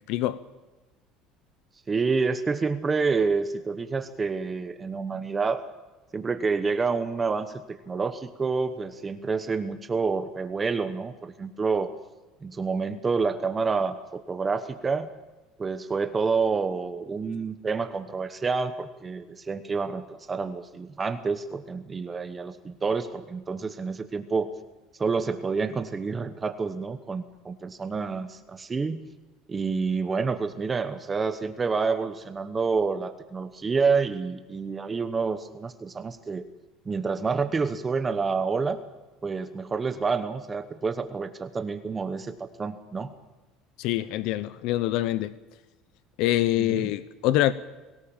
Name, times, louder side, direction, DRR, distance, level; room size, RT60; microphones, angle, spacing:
voice 1, 0.1-0.4 43.8-45.3 46.2-47.5, left 14 dB, 65° left, 0.8 m, -25 dB
voice 2, 1.9-5.6 6.1-11.9 12.4-15.1 15.6-24.5 25.0-29.0 29.5-36.5 36.9-38.8 39.2-43.1 46.6-46.9, right 4 dB, 20° right, 1.0 m, -28 dB
23.0 x 18.0 x 7.3 m
cardioid pair, 140°, 0 cm